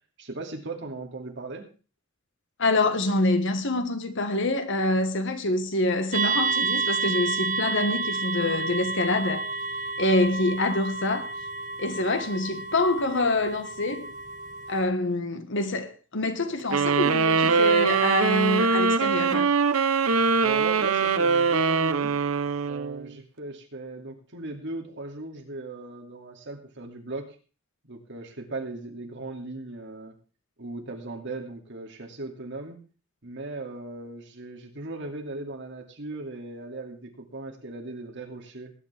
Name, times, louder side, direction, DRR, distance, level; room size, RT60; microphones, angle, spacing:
voice 1, 0.2-1.6 20.4-22.1 22.6-27.4 27.8-30.1 30.6-32.8 33.2-38.7, right 2 dB, 60° right, 2.6 m, -38 dB
voice 2, 2.6-9.4 10.0-11.3 11.8-14.1 14.7-19.5, left 2 dB, 60° left, 1.5 m, -26 dB
sound 1, 6.1-14.8, right 4 dB, 40° right, 1.2 m, -30 dB
Sax Tenor - D minor, 16.7-23.1, right 5 dB, 90° right, 0.9 m, -22 dB
20.0 x 9.8 x 3.5 m
head